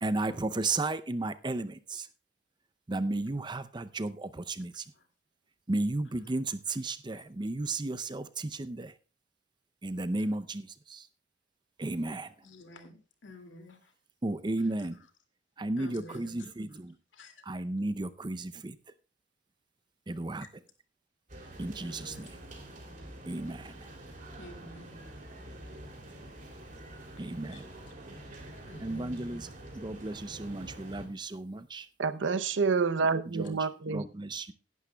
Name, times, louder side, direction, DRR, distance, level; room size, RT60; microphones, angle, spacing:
voice 1, 0.0-2.1 2.9-4.8 5.7-8.9 9.8-11.1 11.8-12.3 14.2-15.0 15.6-16.9 17.4-18.8 20.1-20.5 21.6-22.4 23.3-23.9 27.2-27.7 28.8-29.5 29.7-31.9 33.3-33.6 33.9-34.5, right 2 dB, 25° right, 0.5 m, -34 dB
voice 2, 12.4-13.8 15.8-16.4 17.1-17.4 21.8-22.3 24.4-25.0 27.5-27.6 28.7-29.2, left 1 dB, 85° left, 2.3 m, -49 dB
sound 1, 21.3-31.1, right 1 dB, 45° right, 2.9 m, -47 dB
voice 3, 32.0-34.0, right 4 dB, 80° right, 0.7 m, -28 dB
16.5 x 11.0 x 2.3 m
head